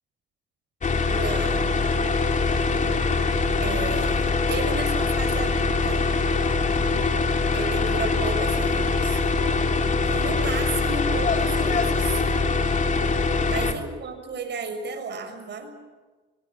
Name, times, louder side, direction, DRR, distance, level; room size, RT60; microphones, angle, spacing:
sound 1, 0.8-13.7, left 3 dB, 40° left, 3.4 m, -23 dB
voice 1, 1.0-1.7 3.6-6.0 7.5-9.2 10.1-12.2 13.5-15.7, right 4 dB, 60° right, 7 dB, 6.4 m, -33 dB
26.0 x 24.5 x 7.4 m, 1.3 s
cardioid pair, 90°, 20 cm